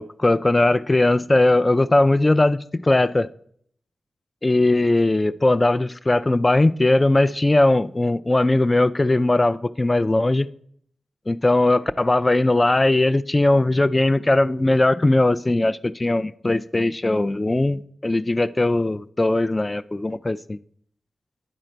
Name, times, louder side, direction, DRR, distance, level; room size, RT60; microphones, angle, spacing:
voice 1, 0.0-3.3 4.4-10.5 11.3-20.6, left 2 dB, 30° left, 0.3 m, -19 dB
9.9 x 3.9 x 4.5 m
cardioid pair, 40°, 0 cm